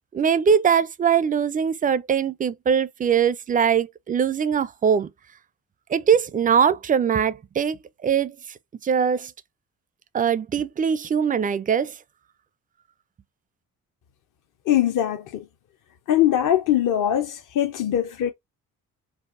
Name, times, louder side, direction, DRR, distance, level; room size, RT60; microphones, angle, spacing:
voice 1, 0.1-5.1 5.9-8.4 8.8-9.3 10.1-11.9, right 7 dB, 20° right, 0.4 m, -21 dB
voice 2, 14.7-15.4 16.1-18.3, left 11 dB, 45° left, 0.7 m, -22 dB
4.7 x 2.4 x 2.5 m
hypercardioid pair, 45°, 43 cm